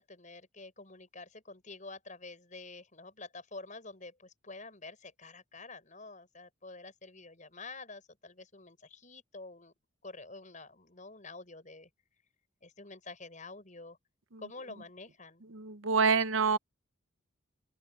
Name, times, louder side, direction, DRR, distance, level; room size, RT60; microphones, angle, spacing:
voice 1, 0.0-9.7 10.0-11.9 12.6-14.0 14.4-15.4, left 3 dB, 40° left, 5.9 m, -48 dB
voice 2, 15.5-16.6, right 5 dB, 80° right, 0.9 m, -26 dB
open air
head